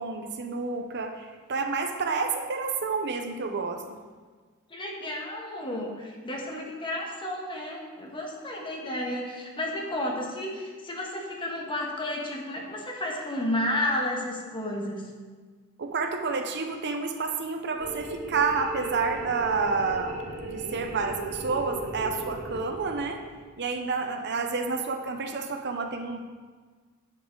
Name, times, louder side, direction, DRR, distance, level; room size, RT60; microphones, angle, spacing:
voice 1, 0.0-3.8 15.8-23.2 23.6-26.2, right 4 dB, 55° right, 5 dB, 0.8 m, -29 dB
voice 2, 4.7-15.0, left 1 dB, 25° left, -1 dB, 1.4 m, -32 dB
sound 1, 17.8-23.5, right 2 dB, 75° right, 2.7 m, -37 dB
10.5 x 7.7 x 3.9 m, 1.5 s
head